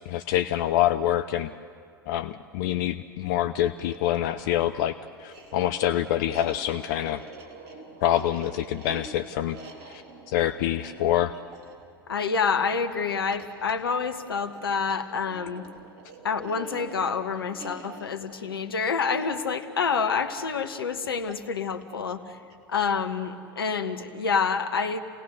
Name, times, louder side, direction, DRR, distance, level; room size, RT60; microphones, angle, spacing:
voice 1, 0.1-1.5 2.1-7.2 8.0-9.6 9.9-11.3, left 12 dB, 55° left, 11 dB, 0.6 m, -26 dB
sound 1, 3.8-23.0, right 3 dB, 50° right, 3.3 m, -47 dB
voice 2, 12.1-15.6 16.2-22.4 22.7-25.0, left 5 dB, 75° left, 9 dB, 1.3 m, -28 dB
29.5 x 18.0 x 6.6 m, 2.3 s
figure-of-eight pair, 85°, 12 cm